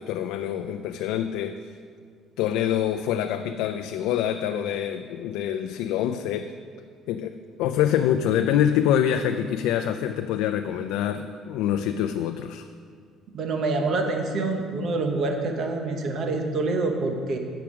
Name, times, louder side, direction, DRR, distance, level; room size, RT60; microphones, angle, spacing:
voice 1, 0.0-1.7 2.4-6.5 7.1-12.7, left 10 dB, 90° left, 8 dB, 0.3 m, -25 dB
voice 2, 13.3-17.4, right 3 dB, 45° right, 4 dB, 0.9 m, -26 dB
8.6 x 5.8 x 6.0 m, 2.1 s
cardioid pair, 160°, 0 cm